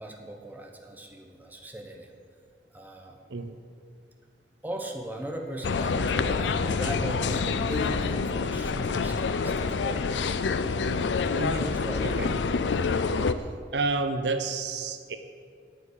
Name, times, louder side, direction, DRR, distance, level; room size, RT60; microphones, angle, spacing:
voice 1, 0.0-2.1 2.7-3.2 4.6-10.1 11.2-12.2, equal, 10° right, 2 dB, 1.0 m, -38 dB
sound 1, 5.2-11.9, equal, 30° left, 2.4 m, -47 dB
sound 2, 5.6-13.3, left 4 dB, 85° left, 0.5 m, -27 dB
voice 2, 11.4-11.7 12.0-12.3 13.7-15.2, right 3 dB, 80° right, 9 dB, 0.7 m, -29 dB
9.3 x 7.2 x 8.5 m, 2.2 s
head